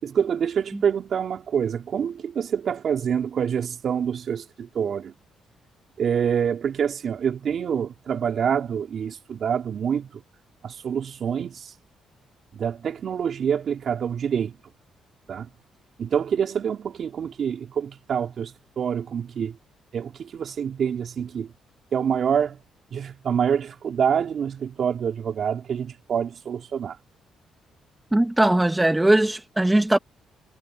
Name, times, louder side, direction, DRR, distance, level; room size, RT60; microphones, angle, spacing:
voice 1, 0.0-5.1 6.0-10.2 10.6-11.7 12.5-14.5 15.3-15.5 16.0-19.6 19.9-21.5 21.9-22.6 22.9-27.0, right 7 dB, 55° right, 4.5 m, -26 dB
voice 2, 28.1-30.0, right 1 dB, 10° right, 1.9 m, -19 dB
cardioid pair, 90°, 0 cm